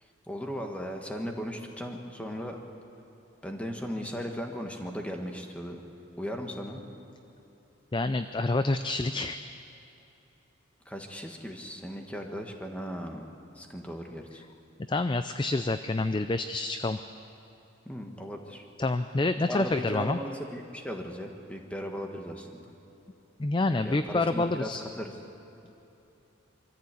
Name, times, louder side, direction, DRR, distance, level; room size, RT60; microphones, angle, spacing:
voice 1, 0.3-2.6 3.4-5.8 6.2-6.8 10.8-13.3 13.5-14.4 17.8-18.6 19.5-22.6 23.8-24.7 25.0-25.1, equal, 5° left, 2 dB, 1.5 m, -37 dB
voice 2, 7.9-9.4 14.9-17.0 18.8-20.2 23.4-24.8, left 2 dB, 25° left, 10 dB, 0.4 m, -27 dB
24.5 x 14.5 x 8.4 m, 3.0 s
head